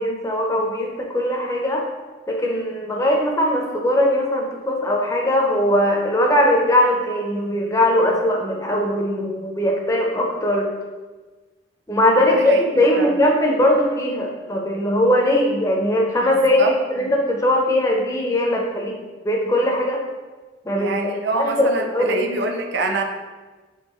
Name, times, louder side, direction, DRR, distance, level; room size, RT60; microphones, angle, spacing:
voice 1, 0.0-1.8 2.3-10.7 11.9-18.9 19.2-20.0 20.6-22.2, left 1 dB, 15° left, 0 dB, 0.5 m, -20 dB
voice 2, 12.2-12.6 13.0-13.1 16.3-16.7 17.0-17.1 20.8-23.0, right 2 dB, 65° right, 3 dB, 0.4 m, -26 dB
3.7 x 3.4 x 3.0 m, 1.3 s
head